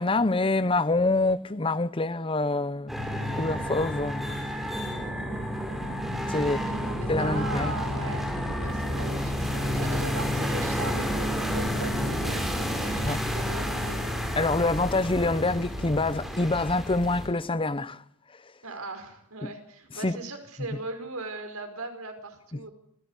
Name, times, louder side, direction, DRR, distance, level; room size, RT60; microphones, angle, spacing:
voice 1, 0.0-3.0 3.3-4.3 6.3-6.7 7.1-7.7 13.0-13.2 14.4-18.0 19.4-19.5 20.0-20.2 22.5-22.6, left 2 dB, 25° left, 0.8 m, -26 dB
sound 1, 2.9-17.3, equal, ahead, 5.6 m, -30 dB
voice 2, 6.3-8.3 8.6-14.0 18.6-22.7, right 3 dB, 90° right, 5.1 m, -39 dB
25.5 x 17.5 x 8.2 m
head